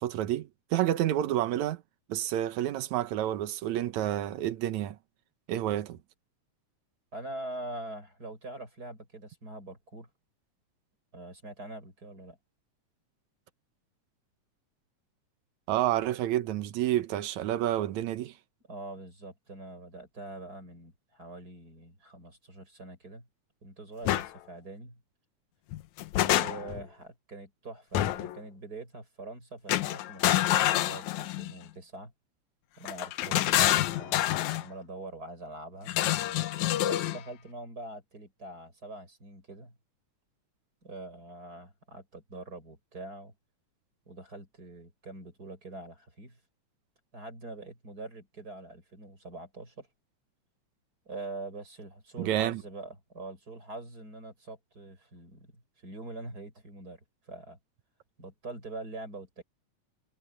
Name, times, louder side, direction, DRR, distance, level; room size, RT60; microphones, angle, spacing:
voice 1, 0.0-1.8 2.1-5.0 5.5-6.0 15.7-18.3 52.2-52.6, right 13 dB, 80° right, 2.4 m, -29 dB
voice 2, 7.1-10.1 11.1-12.4 18.7-23.3 23.6-25.0 26.2-32.1 32.8-35.9 36.8-39.8 40.8-43.3 44.1-46.4 47.1-49.9 51.1-57.6 58.2-59.4, right 2 dB, 30° right, 6.4 m, -44 dB
sound 1, 24.1-24.3 25.7-26.8 28.0-28.4 29.7-31.5 32.9-34.7 35.9-37.2, left 14 dB, 90° left, 2.2 m, -27 dB
omnidirectional pair, 3.3 m